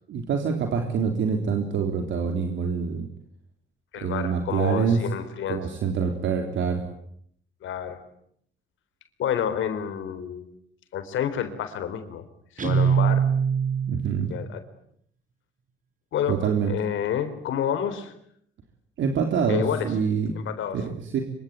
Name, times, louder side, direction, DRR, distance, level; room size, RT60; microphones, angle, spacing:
voice 1, 0.1-3.1 4.0-5.0 5.5-6.8 13.9-14.3 16.3-16.7 19.0-20.3 20.7-21.2, right 6 dB, 75° right, 4 dB, 3.7 m, -25 dB
voice 2, 3.9-5.6 7.6-8.0 9.2-10.5 10.9-12.3 12.6-13.3 14.3-14.6 16.1-18.1 19.5-19.9 20.3-20.8, left 9 dB, 75° left, 9 dB, 4.0 m, -29 dB
Guitar, 12.6-14.3, right 7 dB, 40° right, 4.6 m, -22 dB
26.0 x 24.0 x 9.6 m, 0.69 s
cardioid pair, 90°, 20 cm